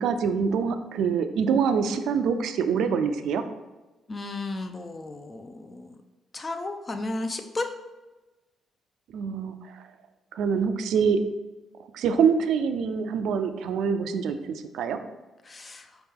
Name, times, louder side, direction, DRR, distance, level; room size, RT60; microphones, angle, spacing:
voice 1, 0.0-3.4 9.1-9.8 10.3-11.2 11.9-15.0, right 6 dB, 80° right, 8 dB, 0.3 m, -25 dB
voice 2, 4.1-6.0 6.3-7.7 15.4-15.9, left 2 dB, 30° left, 6 dB, 0.4 m, -34 dB
4.5 x 2.9 x 3.5 m, 1.1 s
cardioid pair, 90°, 0 cm